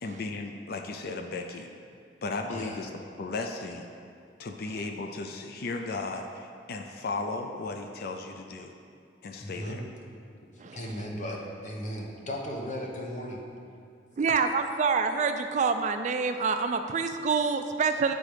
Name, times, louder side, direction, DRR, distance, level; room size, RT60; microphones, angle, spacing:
voice 1, 0.0-1.7 2.2-3.9 4.4-8.7 9.2-9.8, left 3 dB, 60° left, 4 dB, 0.5 m, -35 dB
voice 2, 2.5-2.8 9.4-9.8 10.7-13.4, equal, 45° left, -1 dB, 1.0 m, -36 dB
voice 3, 14.2-18.1, right 5 dB, 45° right, 7 dB, 0.3 m, -26 dB
9.0 x 3.9 x 4.9 m, 2.3 s
head